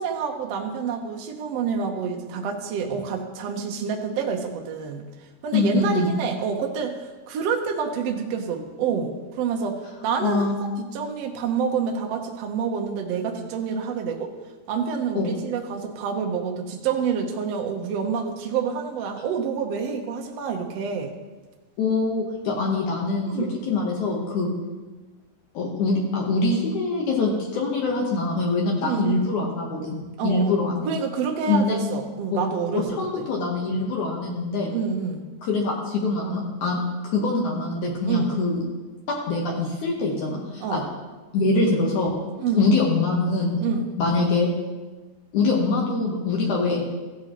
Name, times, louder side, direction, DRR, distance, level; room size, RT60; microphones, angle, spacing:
voice 1, 0.0-5.0 5.4-7.0 7.3-14.3 14.7-21.1 23.3-23.6 28.8-29.2 30.2-30.5 30.9-33.2 34.7-35.3 38.0-38.3 40.6-40.8 42.4-42.6 43.6-43.9, right 6 dB, 70° right, 2 dB, 1.6 m, -27 dB
voice 2, 5.5-6.1 10.2-10.6 15.1-15.4 21.8-24.5 25.5-30.9 31.5-31.8 32.3-32.4 32.7-34.7 35.4-38.6 39.1-40.8 41.3-42.1 42.6-43.6 44.0-44.5 45.3-46.8, left 3 dB, 65° left, -2 dB, 2.4 m, -24 dB
15.5 x 8.5 x 3.0 m, 1.3 s
omnidirectional pair, 3.9 m